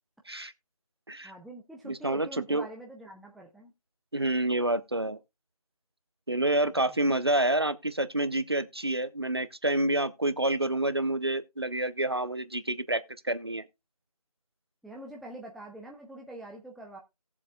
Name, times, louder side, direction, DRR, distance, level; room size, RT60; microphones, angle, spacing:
voice 1, 1.2-3.7 14.8-17.0, right 1 dB, ahead, 0.4 m, -45 dB
voice 2, 1.8-2.7 4.1-5.2 6.3-13.6, right 1 dB, 40° right, 0.7 m, -28 dB
18.0 x 7.3 x 2.3 m
figure-of-eight pair, 170°, 19 cm